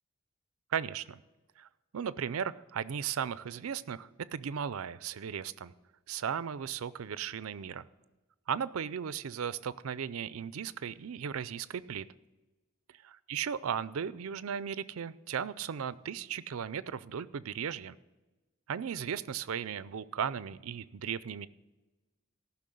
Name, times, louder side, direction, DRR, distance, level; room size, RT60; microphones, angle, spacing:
voice 1, 0.7-1.2 1.6-1.7 1.9-5.7 6.1-7.8 8.5-12.0 13.0-18.0 18.7-21.5, right 7 dB, 80° right, 17 dB, 0.5 m, -36 dB
14.5 x 5.9 x 7.7 m, 1.1 s
head